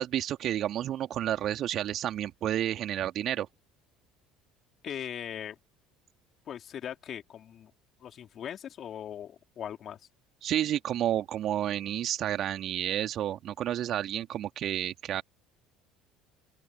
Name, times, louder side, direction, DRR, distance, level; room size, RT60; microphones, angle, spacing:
voice 1, 0.0-3.5 10.4-15.2, right 11 dB, 45° right, 2.9 m, -30 dB
voice 2, 4.8-5.6 6.5-7.7 8.0-10.0, left 9 dB, 40° left, 4.0 m, -40 dB
open air
figure-of-eight pair, 60°, 0 cm